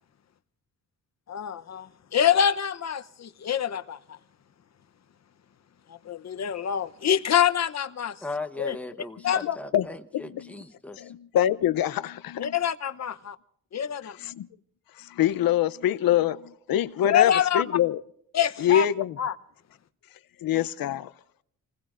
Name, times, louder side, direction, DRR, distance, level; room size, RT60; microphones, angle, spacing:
voice 1, 1.3-4.0 6.0-8.1 8.6-8.8 9.2-9.6 12.4-13.4 13.7-14.1 17.0-17.6 18.3-18.9 19.2-19.3, left 9 dB, 50° left, 0.8 m, -25 dB
voice 2, 8.2-11.1, left 2 dB, 5° left, 1.0 m, -38 dB
voice 3, 10.1-10.5 11.0-12.5 14.0-14.5 15.0-18.0 18.6-19.2 20.4-21.1, left 11 dB, 80° left, 0.7 m, -25 dB
28.5 x 20.5 x 2.5 m
wide cardioid pair, 140°, 34 cm